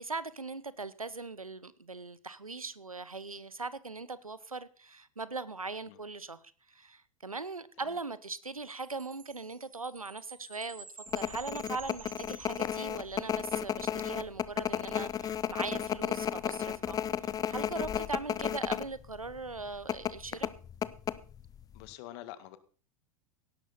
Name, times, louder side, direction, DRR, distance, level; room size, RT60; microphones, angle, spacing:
voice 1, 0.0-10.8 11.1-20.5, right 3 dB, 85° right, 1.0 m, -40 dB
Chime, 8.8-13.3, right 6 dB, 70° right, 4.0 m, -51 dB
sound 1, 11.1-18.9 19.2-19.3 19.9-21.6 21.8-21.9, left 9 dB, 20° left, 0.7 m, -33 dB
voice 2, 21.7-22.6, left 14 dB, 45° left, 1.8 m, -46 dB
17.5 x 12.0 x 4.2 m
figure-of-eight pair, 90°, 18 cm